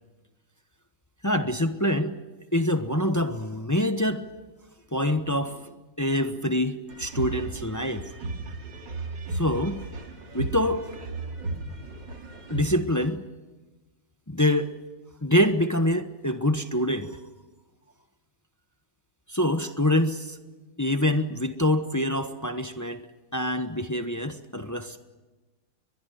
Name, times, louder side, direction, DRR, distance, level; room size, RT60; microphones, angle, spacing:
voice 1, 1.2-2.2 2.5-4.3 4.9-5.7 6.0-8.0 9.3-9.8 10.3-10.9 12.5-13.2 14.3-14.7 15.2-17.1 19.3-20.4 20.8-23.0 23.3-25.0, left 1 dB, 15° left, 0.7 m, -25 dB
sound 1, 6.9-12.8, right 3 dB, 65° right, 3.0 m, -35 dB
22.5 x 21.5 x 9.3 m
omnidirectional pair, 2.1 m